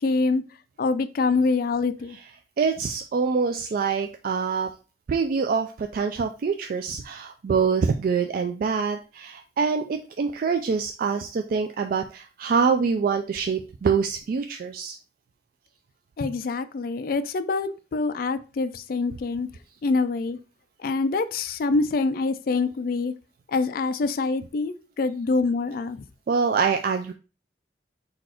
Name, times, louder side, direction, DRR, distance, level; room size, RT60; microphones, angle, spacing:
voice 1, 0.0-0.4 0.8-2.2 16.2-19.5 19.8-20.4 20.8-23.1 23.5-26.0, left 3 dB, 55° left, 0.4 m, -25 dB
voice 2, 2.6-4.7 5.1-15.0 26.3-27.1, right 5 dB, 55° right, 0.3 m, -25 dB
4.1 x 2.5 x 4.3 m
head